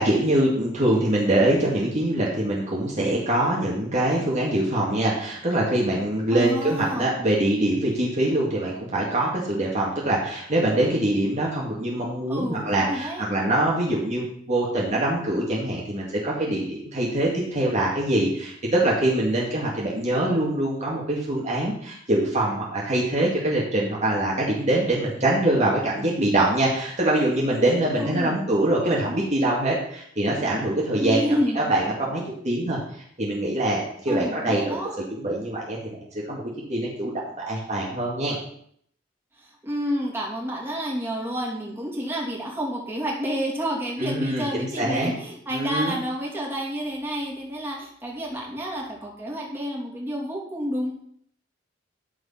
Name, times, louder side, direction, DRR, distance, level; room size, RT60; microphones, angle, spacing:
voice 1, 0.0-31.2 31.6-32.8 33.2-34.8 35.1-36.0 36.3-38.4 44.0-45.1 45.5-46.0, right 1 dB, 40° right, -4 dB, 2.2 m, -24 dB
voice 2, 6.3-7.1 12.3-13.3 28.0-28.4 31.0-31.7 34.1-34.9 39.4-50.9, equal, 15° right, -4 dB, 2.8 m, -29 dB
13.0 x 4.7 x 5.8 m, 0.65 s
head